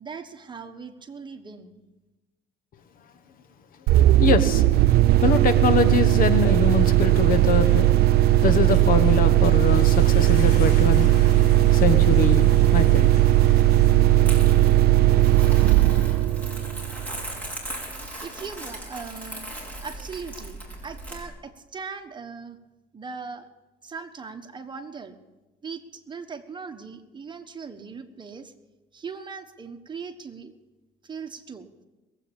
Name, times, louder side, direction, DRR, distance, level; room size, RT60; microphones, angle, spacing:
voice 1, 0.0-1.8 18.2-19.5 19.8-22.6 22.9-23.5 23.8-25.2 25.6-28.5 28.9-30.6 31.0-31.7, right 5 dB, 25° right, 6 dB, 1.4 m, -39 dB
sound 1, 3.9-17.3, right 14 dB, 65° right, 0.4 m, -18 dB
voice 2, 4.2-4.6 5.2-7.9 8.4-11.3 11.7-13.2, left 5 dB, 55° left, 11 dB, 1.2 m, -24 dB
sound 2, 8.7-14.6, left 4 dB, 90° left, 4.1 m, -44 dB
Crumpling crinkling, 14.2-21.2, right 1 dB, 10° left, 4.2 m, -38 dB
21.0 x 8.1 x 7.2 m, 1.1 s
cardioid pair, 110°, 17 cm